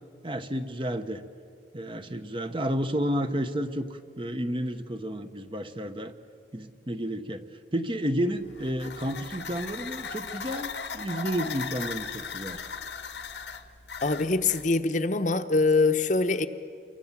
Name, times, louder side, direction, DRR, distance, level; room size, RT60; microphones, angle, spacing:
voice 1, 0.2-1.2 1.7-6.1 6.5-12.6, equal, 30° right, 8 dB, 1.0 m, -31 dB
sound 1, 8.4-14.7, left 5 dB, 85° left, 1.5 m, -38 dB
voice 2, 14.0-16.5, left 3 dB, 45° left, 8 dB, 1.0 m, -24 dB
28.5 x 23.5 x 7.4 m, 2.4 s
head